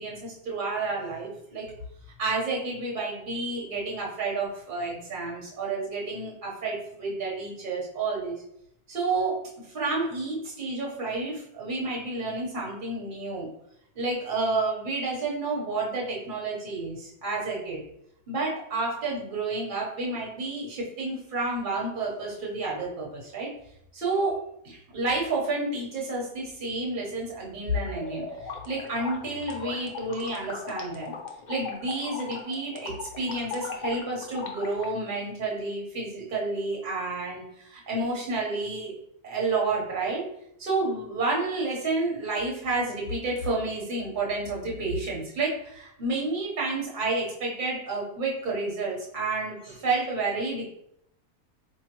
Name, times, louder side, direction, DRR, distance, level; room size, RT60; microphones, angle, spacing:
voice 1, 0.0-1.7 2.2-8.4 8.9-9.4 9.7-13.5 13.9-17.8 18.3-23.5 23.9-28.3 28.6-31.2 31.5-38.9 39.2-40.3 40.6-50.6, right 3 dB, 40° right, -3 dB, 1.1 m, -30 dB
sound 1, 27.9-34.9, left 5 dB, 65° left, 0.4 m, -38 dB
4.3 x 2.7 x 3.0 m, 0.74 s
omnidirectional pair, 1.6 m